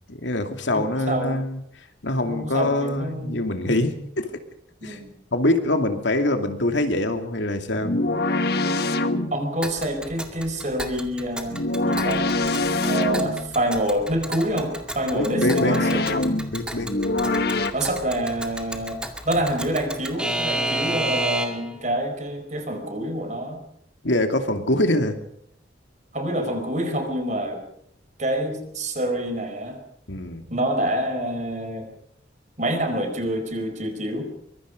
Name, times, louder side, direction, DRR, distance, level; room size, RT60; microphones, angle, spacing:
voice 1, 0.1-1.6 2.0-4.4 4.8-5.0 5.3-8.0 15.1-15.8 16.5-16.9 24.0-25.2 30.1-30.5, left 1 dB, 75° left, 6 dB, 2.6 m, -24 dB
voice 2, 0.7-1.4 2.2-3.4 4.8-5.1 9.3-12.3 12.8-16.3 17.2-17.4 17.7-23.6 26.1-27.6 28.2-29.8 30.5-31.9 32.6-34.3, right 1 dB, 40° right, 6 dB, 4.7 m, -27 dB
sound 1, 7.8-9.5 11.5-13.5 15.3-17.7, left 2 dB, 55° left, 1.5 m, -24 dB
Alarm / Clock, 9.6-21.8, right 1 dB, 5° right, 2.1 m, -32 dB
24.0 x 23.0 x 5.3 m, 0.70 s
head